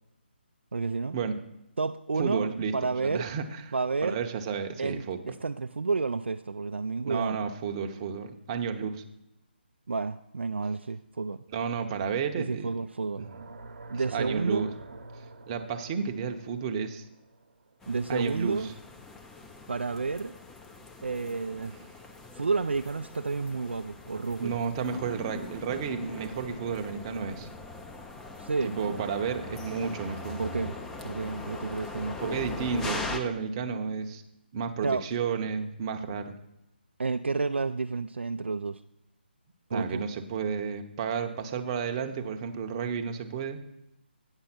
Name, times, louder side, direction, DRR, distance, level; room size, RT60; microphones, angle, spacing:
voice 1, 0.7-1.2 1.8-3.3 3.7-4.2 4.8-7.5 9.9-11.4 12.4-13.3 13.9-14.7 17.9-18.7 19.7-20.4 21.0-21.8 22.3-24.5 28.4-29.0 30.4-30.8 31.0-32.4 34.8-35.1 37.0-38.8 39.7-40.0, right 4 dB, 85° right, 8 dB, 0.3 m, -31 dB
voice 2, 2.2-2.8 3.0-3.6 4.0-5.2 7.1-9.0 11.5-12.7 14.1-14.7 15.5-17.0 18.1-18.7 24.4-27.5 28.6-30.4 32.2-34.2 34.5-36.4 39.7-43.6, right 6 dB, 25° right, 5 dB, 0.7 m, -32 dB
sound 1, 13.0-18.1, right 3 dB, 70° right, 0.9 m, -47 dB
sound 2, 17.8-33.2, left 3 dB, 5° left, 0.4 m, -41 dB
8.8 x 5.3 x 5.9 m, 0.87 s
figure-of-eight pair, 155°, 6 cm